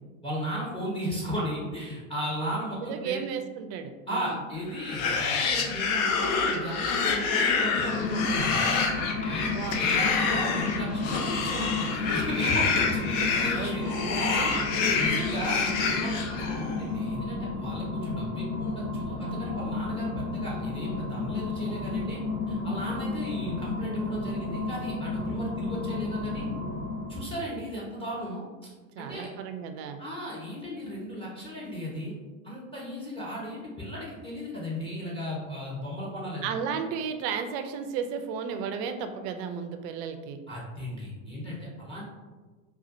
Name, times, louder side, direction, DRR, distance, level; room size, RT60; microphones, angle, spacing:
voice 1, 0.2-3.3 4.1-8.7 9.2-13.8 14.9-15.6 16.0-22.2 22.5-26.5 27.1-28.4 29.0-29.3 30.0-32.1 32.4-36.5 40.5-42.0, equal, 15° left, -5 dB, 0.8 m, -35 dB
voice 2, 2.8-4.4 9.2-9.8 13.3-14.7 28.9-30.0 36.4-40.4, right 6 dB, 50° right, 7 dB, 0.5 m, -34 dB
sound 1, 4.8-16.8, left 5 dB, 50° left, 0.6 m, -27 dB
sound 2, 7.6-27.4, left 3 dB, 70° left, 1.1 m, -33 dB
4.2 x 2.4 x 2.6 m, 1.3 s
hypercardioid pair, 95°, 40 cm